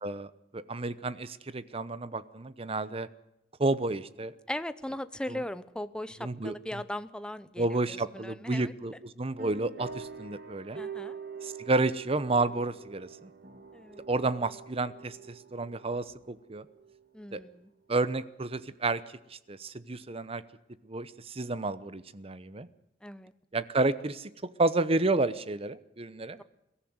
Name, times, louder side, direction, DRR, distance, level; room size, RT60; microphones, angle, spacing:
voice 1, 0.0-3.1 3.6-4.3 5.3-5.4 6.2-6.5 7.6-10.8 11.4-13.3 14.1-16.6 17.3-17.4 17.9-19.0 19.3-20.4 20.9-22.7 23.5-24.3 24.6-26.4, right 2 dB, 35° right, 16 dB, 0.9 m, -31 dB
voice 2, 4.5-8.7 10.7-11.2 13.7-14.1 17.1-17.7 23.0-23.3, left 1 dB, 5° left, 13 dB, 0.7 m, -38 dB
sound 1, 9.4-17.5, right 5 dB, 60° right, 2.8 m, -45 dB
22.5 x 14.5 x 9.5 m, 0.86 s
head